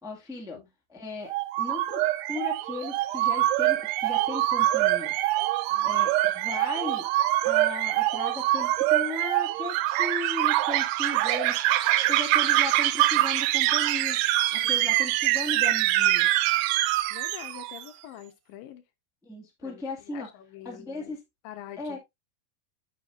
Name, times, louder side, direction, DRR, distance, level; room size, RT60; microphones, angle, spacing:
voice 1, 0.0-0.6 0.9-1.3 1.6-2.0 2.3-5.1 5.8-7.1 7.4-11.6 12.1-14.2 14.5-16.3 19.2-20.3 20.6-21.2 21.8-22.0, left 3 dB, ahead, 1.0 m, -36 dB
sound 1, 1.3-17.8, right 15 dB, 90° right, 1.8 m, -24 dB
voice 2, 5.7-6.1 14.6-14.9 17.1-18.8 19.6-21.2 21.4-22.0, left 12 dB, 75° left, 2.4 m, -45 dB
9.1 x 6.7 x 2.6 m
omnidirectional pair, 4.3 m